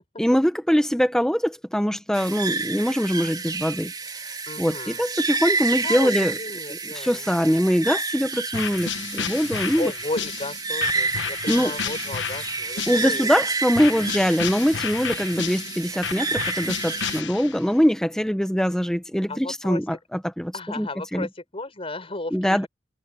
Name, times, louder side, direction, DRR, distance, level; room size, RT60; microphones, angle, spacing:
voice 1, 0.2-3.9 4.6-6.4 6.7-9.9 11.5-11.7 12.9-20.9 21.1-21.3 22.3-22.7, equal, 5° left, 1.1 m, -23 dB
sound 1, 2.1-17.2, right 4 dB, 25° right, 3.7 m, -30 dB
voice 2, 4.5-5.0 5.8-7.3 9.8-13.3 19.3-20.0 20.5-22.7, left 2 dB, 30° left, 6.3 m, -34 dB
sound 2, 8.5-13.3 13.7-17.7, left 7 dB, 85° left, 1.1 m, -32 dB
head